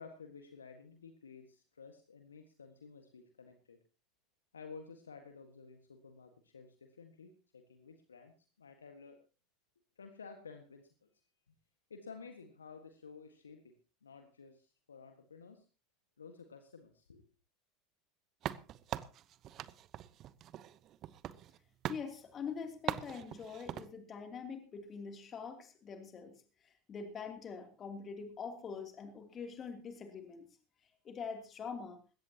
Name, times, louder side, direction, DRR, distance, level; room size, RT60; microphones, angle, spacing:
voice 1, 0.0-3.8 4.5-9.2 10.0-11.1 11.5-11.6 11.9-15.7 16.2-17.2, left 5 dB, 85° left, 6 dB, 1.6 m, -53 dB
sound 1, 18.4-21.6 21.8-22.1 22.9-23.9, right 12 dB, 45° right, 0.9 m, -41 dB
voice 2, 21.9-30.5 31.0-32.0, left 5 dB, 35° left, 5 dB, 2.9 m, -44 dB
20.5 x 16.5 x 2.9 m, 0.33 s
figure-of-eight pair, 80°, 0 cm